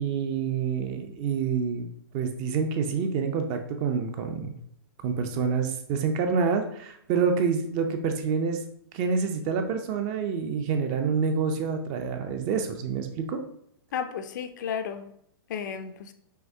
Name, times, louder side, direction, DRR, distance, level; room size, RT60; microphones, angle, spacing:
voice 1, 0.0-1.9 2.1-4.6 5.0-8.6 8.9-13.4, right 6 dB, 25° right, 0.4 m, -27 dB
voice 2, 13.9-15.1 15.5-16.1, left 7 dB, 50° left, 0.4 m, -33 dB
5.7 x 2.9 x 2.7 m
hypercardioid pair, 155°, 13 cm